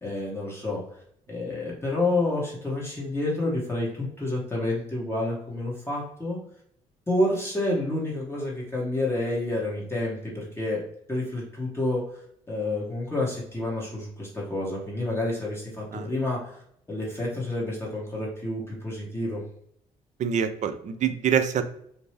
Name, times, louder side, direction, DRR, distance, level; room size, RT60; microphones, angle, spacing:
voice 1, 0.0-0.8 1.3-6.4 7.1-10.8 11.1-12.0 12.5-16.6 16.9-19.4, left 2 dB, 15° left, -5 dB, 1.1 m, -29 dB
voice 2, 20.2-21.6, right 8 dB, 50° right, 9 dB, 0.4 m, -25 dB
2.6 x 2.1 x 3.2 m, 0.68 s
supercardioid pair, 60°, 16 cm